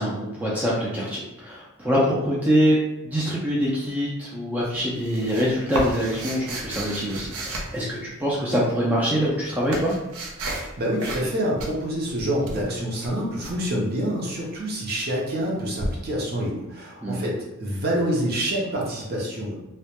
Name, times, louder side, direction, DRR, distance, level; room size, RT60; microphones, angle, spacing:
voice 1, 0.0-2.8 3.0-9.9 17.0-17.2, equal, 10° right, -6 dB, 0.3 m, -24 dB
sound 1, 4.6-8.4 9.1-10.7 11.0-11.3 11.6-13.6 15.8-15.9, right 2 dB, 85° right, 0.5 m, -33 dB
voice 2, 10.8-19.6, equal, 45° right, -3 dB, 0.6 m, -27 dB
2.2 x 2.1 x 2.8 m, 1.0 s
head